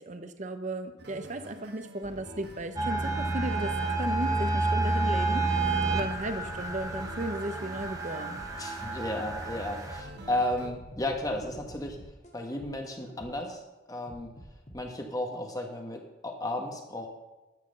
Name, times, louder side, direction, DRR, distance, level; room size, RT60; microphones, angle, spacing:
voice 1, 0.0-5.6 5.9-8.4, right 1 dB, 40° right, 9 dB, 0.8 m, -35 dB
sound 1, 1.0-10.7, right 1 dB, 55° right, 1.5 m, -47 dB
sound 2, 2.8-10.0, right 2 dB, 20° right, 1.1 m, -30 dB
sound 3, 5.7-8.7 9.3-13.5 14.1-14.8, equal, 35° left, 1.8 m, -48 dB
voice 2, 8.6-12.0 12.3-13.6 13.9-14.3 14.7-17.1, left 1 dB, 20° left, 3 dB, 1.2 m, -33 dB
11.0 x 7.6 x 6.5 m, 1.1 s
head